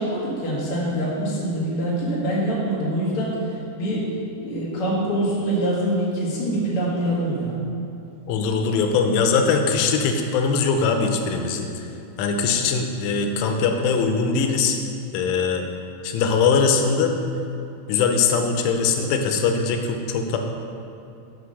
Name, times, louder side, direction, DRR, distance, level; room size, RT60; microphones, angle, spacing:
voice 1, 0.0-4.1 4.4-7.6, right 1 dB, 55° left, -6 dB, 1.5 m, -24 dB
voice 2, 8.3-11.9 12.2-14.8 15.1-15.6 16.0-17.1 17.9-20.4, left 5 dB, 90° left, 4 dB, 3.2 m, -21 dB
8.1 x 5.3 x 6.4 m, 2.7 s
omnidirectional pair, 5.5 m